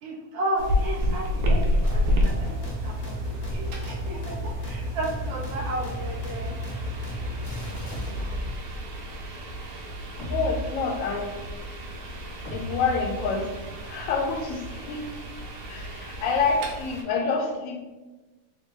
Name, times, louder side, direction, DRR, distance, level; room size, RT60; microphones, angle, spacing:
voice 1, 0.0-6.6, right 1 dB, 70° right, -2 dB, 0.6 m, -33 dB
sound 1, 0.6-17.0, left 1 dB, 90° right, 1.3 m, -31 dB
sound 2, 1.8-8.5, left 1 dB, 45° left, 0.7 m, -33 dB
sound 3, 7.9-9.0 10.2-11.5 12.4-13.7, right 1 dB, ahead, 0.8 m, -36 dB
voice 2, 10.2-11.3 12.5-15.2 15.7-17.8, left 4 dB, 70° left, 4 dB, 0.9 m, -28 dB
3.5 x 2.2 x 3.6 m, 1.2 s
omnidirectional pair, 1.6 m